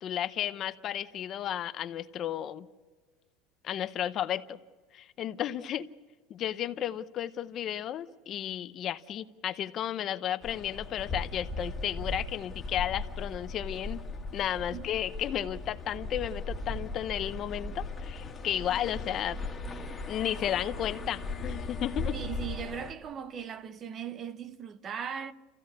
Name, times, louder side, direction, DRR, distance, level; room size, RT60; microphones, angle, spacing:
voice 1, 0.0-2.7 3.6-4.6 4.9-5.9 6.3-14.0 14.3-19.4 20.1-22.2, left 11 dB, 35° left, 0.7 m, -33 dB
sound 1, 10.4-22.9, left 3 dB, 15° left, 1.8 m, -38 dB
voice 2, 22.1-25.3, right 8 dB, 25° right, 0.8 m, -38 dB
29.0 x 16.0 x 8.4 m
cardioid pair, 165°, 0 cm